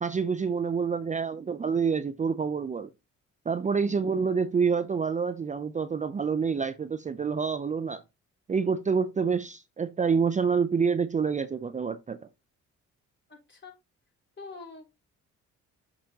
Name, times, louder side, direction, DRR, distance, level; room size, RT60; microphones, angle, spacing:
voice 1, 0.0-2.9 3.5-8.0 8.5-12.2, right 5 dB, 25° right, 0.5 m, -27 dB
voice 2, 13.3-13.8 14.4-15.0, left 4 dB, 40° left, 4.0 m, -45 dB
6.7 x 5.7 x 2.8 m
cardioid pair, 90°, 30 cm